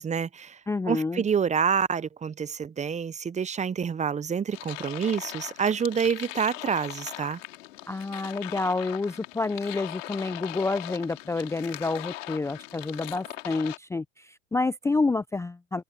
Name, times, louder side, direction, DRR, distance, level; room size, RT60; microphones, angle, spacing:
voice 1, 0.0-0.6 0.9-7.4, right 6 dB, 20° right, 0.9 m, -27 dB
voice 2, 0.7-1.2 7.9-15.8, left 3 dB, 5° left, 0.6 m, -29 dB
sound 1, 4.5-13.8, left 16 dB, 70° left, 3.8 m, -40 dB
open air
hypercardioid pair, 95°, 39 cm